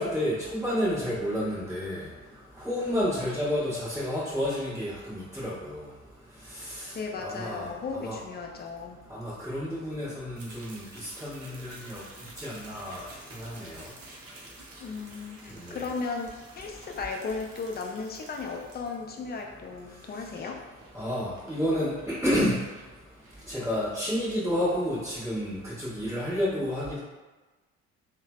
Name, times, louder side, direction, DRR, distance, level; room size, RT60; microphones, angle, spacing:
voice 1, 0.0-2.0 2.6-5.8 6.8-6.9 7.2-7.7 7.9-8.2 9.1-12.0 12.4-13.0 13.4-13.8 15.6-15.8 20.9-22.5 23.5-27.0, equal, 5° right, -14 dB, 1.3 m, -30 dB
voice 2, 6.9-9.0 14.8-20.6, left 4 dB, 25° left, 1 dB, 0.4 m, -35 dB
sound 1, 10.3-25.7, right 2 dB, 35° right, 0.7 m, -51 dB
3.1 x 2.1 x 2.3 m, 1.2 s
figure-of-eight pair, 50°, 41 cm